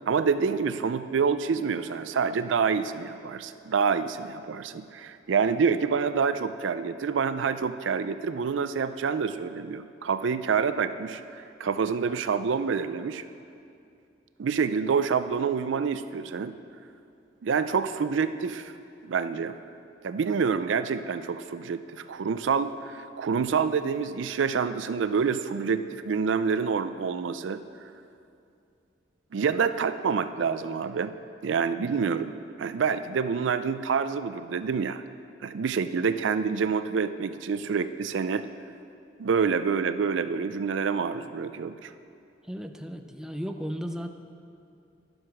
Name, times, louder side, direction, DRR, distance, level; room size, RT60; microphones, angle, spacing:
voice 1, 0.1-13.2 14.4-16.5 17.4-18.7 19.0-19.6 20.0-27.6 29.3-31.1 31.4-35.0 35.4-38.5 39.2-41.9, right 5 dB, 75° right, 12 dB, 0.4 m, -27 dB
voice 2, 42.5-44.1, equal, 5° right, 5 dB, 0.5 m, -35 dB
11.5 x 7.9 x 5.9 m, 2.5 s
head